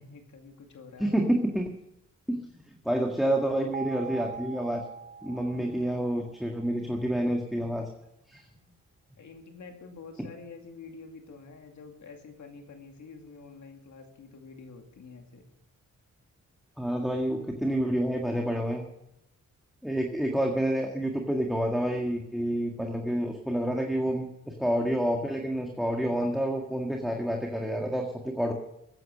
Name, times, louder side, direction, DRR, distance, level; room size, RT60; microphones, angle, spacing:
voice 1, 0.0-1.2 5.9-6.4 9.2-15.5, left 4 dB, 65° left, 4 dB, 2.5 m, -48 dB
voice 2, 1.0-1.7 2.3-4.8 5.2-7.9 8.3-8.5 16.8-18.9 19.8-28.5, right 1 dB, ahead, 1 dB, 1.8 m, -28 dB
sound 1, 3.7-6.7, right 5 dB, 25° right, 0.5 m, -42 dB
15.0 x 9.2 x 6.7 m, 0.82 s
cardioid pair, 80°, 31 cm